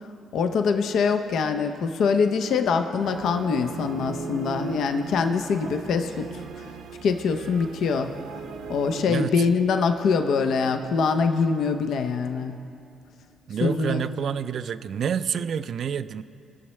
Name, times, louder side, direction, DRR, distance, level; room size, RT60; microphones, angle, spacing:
voice 1, 0.3-6.4 7.0-8.1 8.7-12.6 13.6-14.0, left 5 dB, 75° left, 7 dB, 0.6 m, -24 dB
sound 1, 3.0-9.0, right 5 dB, 80° right, 0.8 m, -38 dB
voice 2, 9.1-9.5 13.5-16.2, right 8 dB, 60° right, 13 dB, 0.3 m, -28 dB
21.0 x 7.1 x 3.2 m, 2.5 s
cardioid pair, 90°, 0 cm